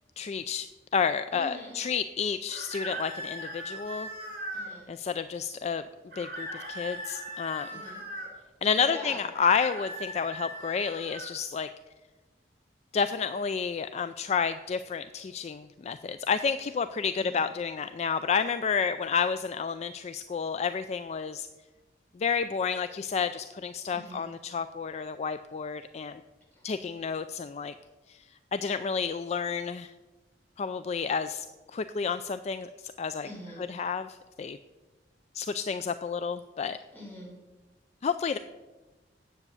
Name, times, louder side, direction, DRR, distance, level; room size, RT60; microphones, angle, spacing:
voice 1, 0.2-0.7 0.9-4.1 4.9-5.8 6.2-7.7 8.6-11.7 12.9-21.5 22.2-26.2 26.6-27.7 28.1-28.2 28.5-29.9 30.6-31.5 31.7-32.7 33.0-33.3 33.7-34.6 35.3-36.8 38.0-38.4, left 6 dB, 40° left, 11 dB, 0.3 m, -30 dB
voice 2, 1.3-1.8 4.5-4.9 7.7-8.0 8.8-9.2 17.2-17.5 23.9-24.3 26.5-26.6 33.2-33.6 36.9-37.3, equal, 10° left, -5 dB, 4.5 m, -44 dB
sound 1, 2.5-4.7 6.1-8.3 9.3-11.3, right 1 dB, 55° right, 3.5 m, -39 dB
9.7 x 8.0 x 6.9 m, 1.2 s
head